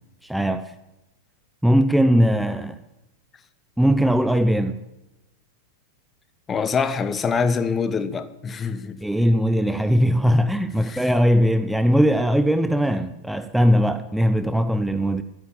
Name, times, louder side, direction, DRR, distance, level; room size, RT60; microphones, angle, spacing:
voice 1, 0.2-0.7 1.6-2.8 3.8-4.8 9.0-15.2, equal, ahead, 0.7 m, -20 dB
voice 2, 6.5-9.0 10.8-11.1, left 5 dB, 20° left, 1.2 m, -25 dB
14.0 x 13.0 x 7.2 m
figure-of-eight pair, 90°, 0 cm